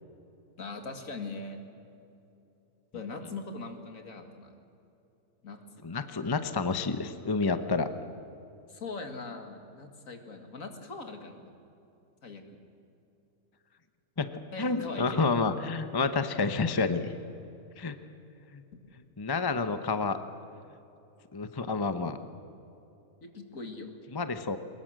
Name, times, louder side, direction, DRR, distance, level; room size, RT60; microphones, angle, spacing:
voice 1, 0.6-1.6 2.9-4.5 5.4-5.8 8.7-11.5 12.2-12.6 14.5-15.2 23.2-23.9, left 3 dB, 60° left, 6 dB, 2.3 m, -41 dB
voice 2, 5.8-7.9 14.2-14.3 14.6-17.1 17.8-18.0 18.5-18.6 19.2-20.2 21.3-22.2 24.1-24.6, left 4 dB, 20° left, 10 dB, 0.6 m, -29 dB
22.5 x 20.5 x 7.6 m, 2.8 s
omnidirectional pair, 1.6 m